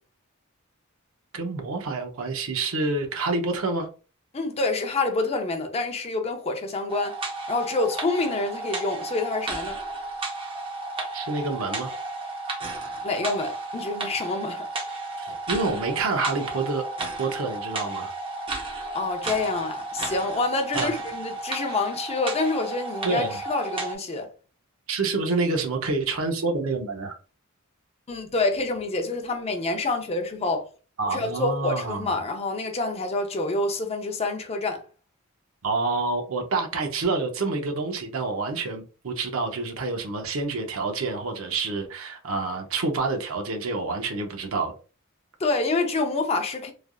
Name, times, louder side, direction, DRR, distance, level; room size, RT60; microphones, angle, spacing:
voice 1, 1.3-3.9 11.1-11.9 15.2-16.8 17.2-18.1 20.7-20.9 23.0-23.4 24.9-27.2 31.0-32.1 35.6-44.7, right 3 dB, 70° right, 0.6 m, -28 dB
voice 2, 4.3-7.2 7.5-9.8 13.0-14.7 18.7-24.3 28.1-30.6 31.1-34.8 45.4-46.7, left 3 dB, 30° left, 0.5 m, -27 dB
sound 1, 6.9-23.9, right 2 dB, 25° right, 0.6 m, -33 dB
3.2 x 2.4 x 2.3 m
head